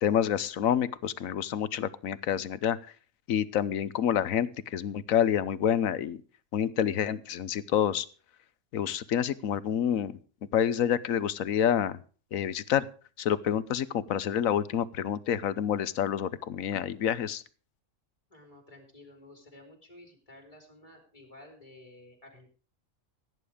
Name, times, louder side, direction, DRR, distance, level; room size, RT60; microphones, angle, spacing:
voice 1, 0.0-2.8 3.3-6.2 6.5-8.1 8.7-10.2 10.5-12.0 12.3-12.8 13.2-17.4, left 9 dB, 80° left, 17 dB, 1.2 m, -28 dB
voice 2, 18.3-22.5, left 1 dB, 25° left, 3 dB, 4.0 m, -53 dB
17.0 x 9.7 x 5.0 m, 0.38 s
omnidirectional pair, 1.4 m